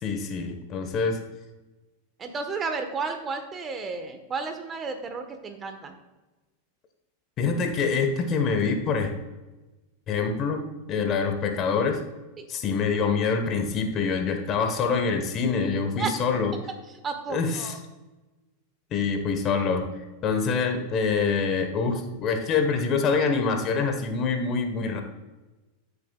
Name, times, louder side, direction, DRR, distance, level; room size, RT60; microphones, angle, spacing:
voice 1, 0.0-1.2 7.4-9.1 10.1-10.6 10.9-12.0 12.5-16.5 17.3-17.7 18.9-25.0, left 5 dB, 40° left, 6 dB, 1.3 m, -25 dB
voice 2, 2.2-5.9 12.4-12.5 16.0-16.1 17.0-17.7, right 4 dB, 25° right, 7 dB, 1.3 m, -32 dB
13.5 x 6.9 x 2.4 m, 1.1 s
hypercardioid pair, 95°, 0 cm